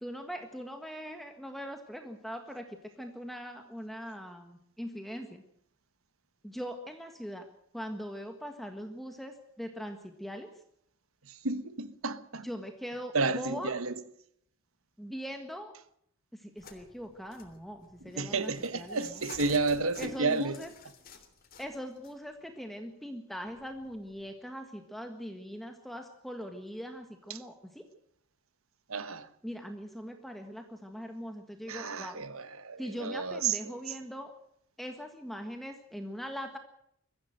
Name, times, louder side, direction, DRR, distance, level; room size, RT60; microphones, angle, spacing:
voice 1, 0.0-5.4 6.4-7.5 7.7-10.5 12.4-13.7 15.0-15.7 16.3-19.2 20.0-20.7 21.6-27.9 29.4-32.2 32.8-34.3 34.8-36.6, equal, ahead, 1.6 m, -41 dB
voice 2, 11.4-12.5 13.1-13.9 18.2-20.6 27.3-27.4 28.9-29.3 31.7-33.7, right 4 dB, 80° right, 1.3 m, -31 dB
sound 1, 16.6-22.1 23.5-24.3, left 4 dB, 45° left, 3.3 m, -51 dB
23.0 x 14.5 x 7.9 m
head